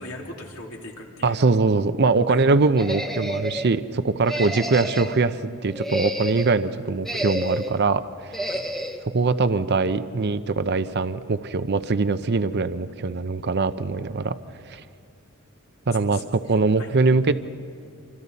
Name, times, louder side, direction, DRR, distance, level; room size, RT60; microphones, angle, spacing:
voice 1, 0.0-1.5 2.3-2.4 4.3-4.5 8.5-8.6 16.1-16.9, left 2 dB, 75° left, -1 dB, 3.2 m, -40 dB
voice 2, 1.2-8.4 9.1-14.3 14.7-14.8 15.9-17.3, right 3 dB, 50° right, 12 dB, 0.6 m, -22 dB
sound 1, 2.8-3.7 4.2-5.2 5.7-6.6 7.0-7.8 8.3-9.0, equal, ahead, 1.0 m, -29 dB
27.5 x 25.0 x 4.1 m, 2.3 s
head